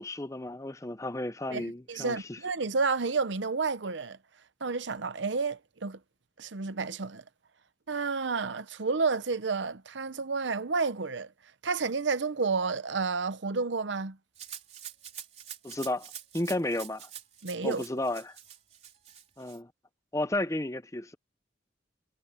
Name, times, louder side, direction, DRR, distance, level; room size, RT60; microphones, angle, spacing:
voice 1, 0.0-2.4 15.6-16.1 16.3-17.1 17.6-18.4 19.4-19.7 20.1-21.1, left 1 dB, 15° left, 0.7 m, -33 dB
voice 2, 1.5-4.2 4.6-6.0 6.4-7.2 7.9-11.3 11.6-14.2 17.4-17.8, right 4 dB, 75° right, 0.8 m, -30 dB
Rattle (instrument), 14.4-19.6, right 10 dB, 35° right, 3.9 m, -46 dB
head